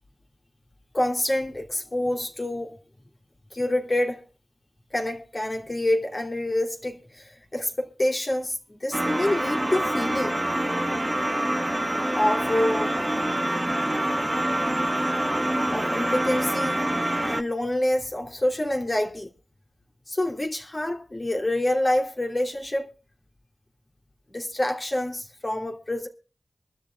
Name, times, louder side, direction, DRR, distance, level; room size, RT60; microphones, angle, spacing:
voice 1, 0.9-2.8 3.5-4.2 4.9-10.4 12.1-12.9 15.7-16.8 17.2-19.3 20.1-22.9 24.3-26.1, left 1 dB, 35° left, 2.9 m, -27 dB
sound 1, 8.9-17.4, right 1 dB, 15° right, 0.9 m, -26 dB
24.5 x 12.5 x 2.3 m
wide cardioid pair, 75°, 0 cm